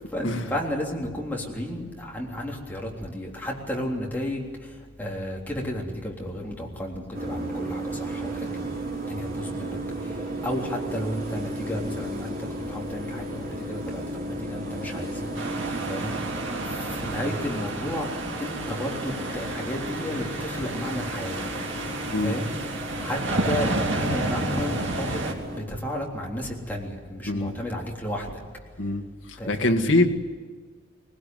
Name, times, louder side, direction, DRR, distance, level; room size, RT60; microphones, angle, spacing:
voice 1, 0.1-4.5 5.0-8.4 9.1-9.8 10.4-12.4 12.7-15.1 15.9-16.1 17.0-18.1 18.4-21.3 22.2-22.5 23.0-23.2 23.5-25.2 25.7-28.3 29.4-30.0, left 1 dB, 10° left, -2 dB, 3.5 m, -32 dB
sound 1, 7.1-25.6, right 1 dB, 45° right, 3.3 m, -34 dB
sound 2, 15.3-25.3, right 2 dB, 65° right, 2.7 m, -31 dB
voice 2, 28.8-30.1, left 2 dB, 65° left, 4 dB, 1.9 m, -24 dB
20.0 x 20.0 x 9.4 m, 1.5 s
head